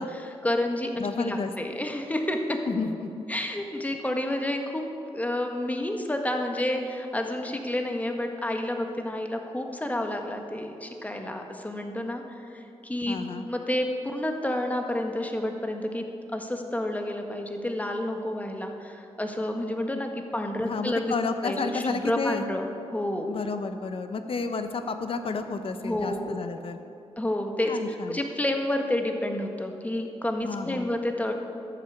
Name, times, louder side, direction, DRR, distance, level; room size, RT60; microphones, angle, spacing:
voice 1, 0.0-2.6 3.3-4.8 5.1-12.2 12.5-16.0 16.3-21.1 21.4-23.3 25.8-26.4 27.2-31.3, left 1 dB, 15° left, 3 dB, 1.6 m, -30 dB
voice 2, 1.0-1.5 2.7-3.1 13.1-13.5 20.6-22.4 23.3-26.8 27.7-28.2 30.4-30.9, left 4 dB, 55° left, 8 dB, 0.9 m, -31 dB
12.0 x 8.5 x 8.1 m, 2.7 s
cardioid pair, 75°, 11 cm